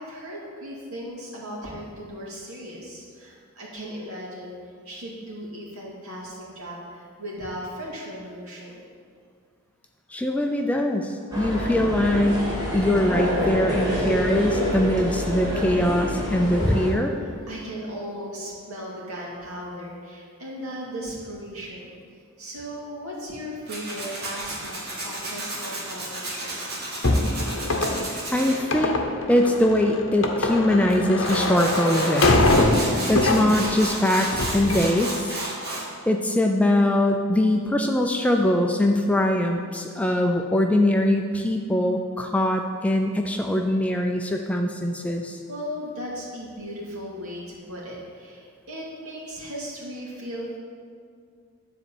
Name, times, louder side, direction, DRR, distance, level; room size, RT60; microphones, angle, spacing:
voice 1, 0.0-4.6 4.8-8.8 17.2-21.9 22.4-24.8 25.0-26.6 45.5-50.6, equal, 80° right, -4 dB, 2.2 m, -37 dB
voice 2, 10.1-12.4 12.7-17.1 28.3-29.0 29.3-32.5 33.1-35.4 36.1-45.4, left 1 dB, 5° left, 3 dB, 0.3 m, -22 dB
Ambiance Hall - Radio France, 11.3-16.9, equal, 15° right, 1.4 m, -27 dB
Tools, 23.7-28.6 30.9-31.0 31.2-35.8, right 1 dB, 45° right, 1.8 m, -32 dB
sound 1, 27.0-33.9 34.2-34.9, left 2 dB, 60° left, 0.9 m, -23 dB
9.8 x 4.1 x 7.0 m, 2.1 s
head